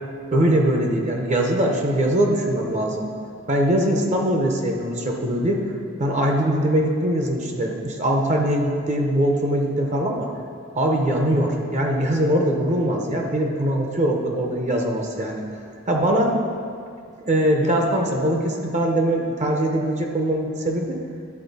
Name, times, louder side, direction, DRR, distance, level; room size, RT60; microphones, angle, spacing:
voice 1, 0.3-3.0 3.5-5.6 6.0-10.3 10.7-15.4 15.9-16.3 17.3-21.0, right 1 dB, 35° right, 1 dB, 0.7 m, -22 dB
11.0 x 4.2 x 4.1 m, 2.3 s
head